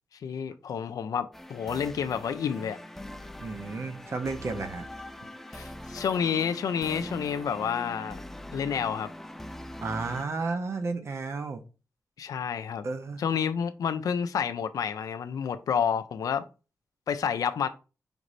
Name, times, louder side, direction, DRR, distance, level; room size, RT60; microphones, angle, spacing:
voice 1, 0.2-2.8 5.5-8.2 8.5-9.1 12.2-12.9 13.2-16.4 17.1-17.7, left 7 dB, 80° left, 0.4 m, -29 dB
sound 1, 1.3-10.3, left 1 dB, 5° left, 0.3 m, -42 dB
voice 2, 3.4-4.9 9.8-11.6 12.8-13.2, right 3 dB, 50° right, 0.6 m, -32 dB
5.1 x 2.6 x 3.1 m
wide cardioid pair, 115°, 6 cm